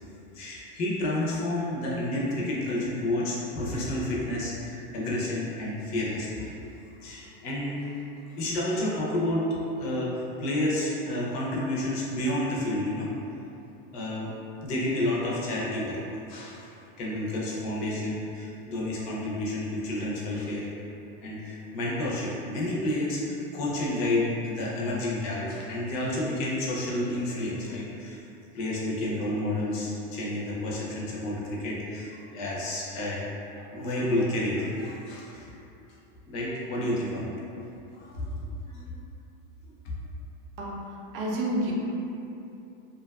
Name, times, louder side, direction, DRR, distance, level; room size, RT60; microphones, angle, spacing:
voice 1, 0.3-6.5 7.0-7.9 8.3-9.5 9.8-13.1 13.9-14.3 14.6-16.0 16.3-16.7 17.0-20.7 21.2-28.2 28.5-33.2 33.5-35.5 36.2-37.3 37.9-38.8, left 1 dB, 40° left, -5 dB, 0.5 m, -30 dB
voice 2, 40.6-41.7, right 1 dB, 70° right, -3 dB, 0.6 m, -30 dB
2.5 x 2.3 x 2.2 m, 2.8 s
supercardioid pair, 160°, 29 cm